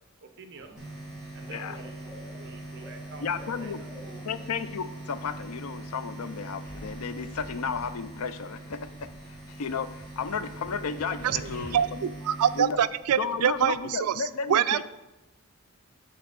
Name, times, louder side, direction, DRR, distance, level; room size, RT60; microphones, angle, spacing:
voice 1, 0.2-0.8 1.3-3.9, right 3 dB, 55° right, 6 dB, 0.9 m, -48 dB
Bird / Cricket, 0.5-10.3, equal, 20° right, 3.4 m, -52 dB
sound 1, 0.8-13.7, right 2 dB, 5° right, 2.3 m, -42 dB
voice 2, 3.2-12.1 12.5-12.8 13.2-14.8, left 5 dB, 80° left, 13 dB, 0.5 m, -34 dB
sound 2, 6.6-8.3 8.6-11.8, equal, 40° left, 2.4 m, -48 dB
voice 3, 12.2-14.1 14.5-14.8, right 9 dB, 90° right, 14 dB, 0.4 m, -24 dB
7.8 x 4.2 x 6.7 m, 0.98 s
head